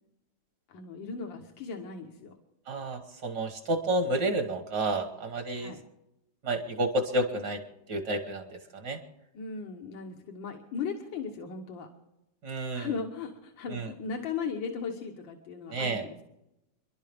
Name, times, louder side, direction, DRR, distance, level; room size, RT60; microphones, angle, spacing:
voice 1, 0.7-2.4 5.6-5.8 9.3-11.9 12.7-16.2, left 5 dB, 90° left, 2 dB, 1.9 m, -37 dB
voice 2, 2.7-5.8 6.4-9.0 12.4-12.9 13.7-13.9 15.7-16.0, right 1 dB, 65° right, 5 dB, 1.9 m, -30 dB
30.0 x 11.5 x 3.5 m, 0.88 s
omnidirectional pair, 2.0 m